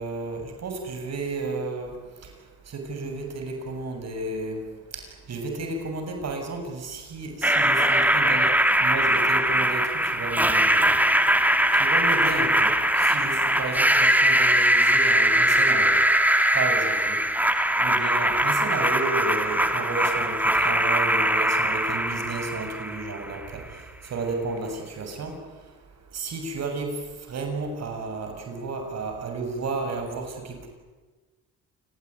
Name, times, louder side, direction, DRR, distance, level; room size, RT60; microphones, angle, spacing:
voice 1, 0.0-1.9 2.7-4.6 4.9-8.5 8.8-10.9 11.7-16.0 16.5-17.2 17.8-23.6 24.0-25.3 26.1-26.9 27.3-30.7, right 3 dB, 60° right, 4 dB, 7.1 m, -32 dB
sound 1, 7.4-23.4, right 1 dB, 5° right, 2.6 m, -21 dB
29.0 x 20.5 x 9.7 m, 1.2 s
cardioid pair, 90°, 30 cm